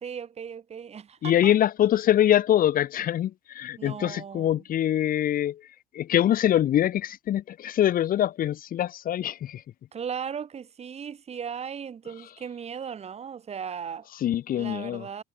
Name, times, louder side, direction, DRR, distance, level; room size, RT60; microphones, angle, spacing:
voice 1, 0.0-1.5 3.8-4.6 9.9-14.1 14.5-15.2, right 7 dB, 40° right, 1.9 m, -37 dB
voice 2, 1.2-5.6 5.9-9.6 14.2-15.1, left 11 dB, 55° left, 1.4 m, -24 dB
cardioid pair, 110°, 17 cm